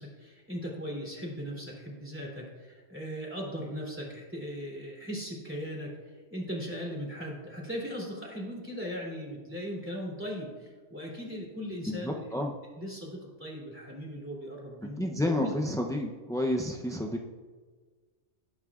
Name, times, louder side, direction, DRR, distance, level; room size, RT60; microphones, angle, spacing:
voice 1, 0.0-12.4 12.8-15.5, equal, 10° right, -4 dB, 3.1 m, -38 dB
voice 2, 11.9-12.5 15.0-17.3, left 1 dB, 5° left, 1 dB, 0.3 m, -30 dB
19.5 x 9.7 x 2.4 m, 1.4 s
omnidirectional pair, 1.2 m